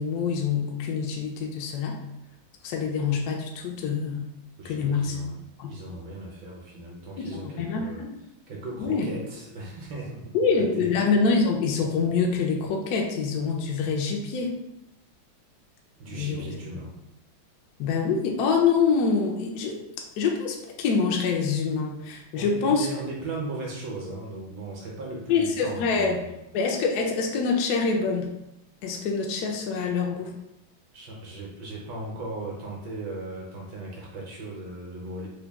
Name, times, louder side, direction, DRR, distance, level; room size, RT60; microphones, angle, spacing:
voice 1, 0.0-2.0 2.6-4.3 4.6-5.2 5.6-5.7 7.2-8.1 8.8-9.1 10.3-14.5 16.1-16.6 17.8-19.8 20.2-22.9 25.3-26.2 26.5-28.3 28.8-30.3, left 5 dB, 75° left, 0 dB, 0.9 m, -25 dB
voice 2, 4.6-5.4 5.7-8.0 8.5-11.0 16.0-16.9 22.3-26.4 30.9-35.3, right 2 dB, 70° right, -2 dB, 1.4 m, -37 dB
3.9 x 2.2 x 3.4 m, 0.87 s
omnidirectional pair, 2.2 m